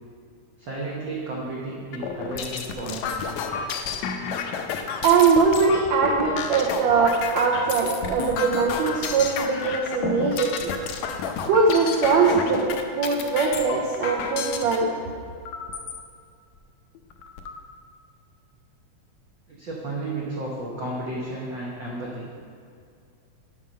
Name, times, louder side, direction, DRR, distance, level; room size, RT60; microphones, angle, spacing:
voice 1, 0.6-3.2 19.5-22.3, right 2 dB, 90° right, -4 dB, 1.0 m, -33 dB
sound 1, 1.9-14.8 15.4-16.0 16.5-16.6 16.9-17.6, left 6 dB, 80° left, 1.7 m, -31 dB
voice 2, 5.0-10.7 11.4-12.7 13.0-15.0, right 5 dB, 70° right, -2 dB, 1.7 m, -21 dB
7.5 x 5.5 x 6.3 m, 2.3 s
omnidirectional pair, 3.7 m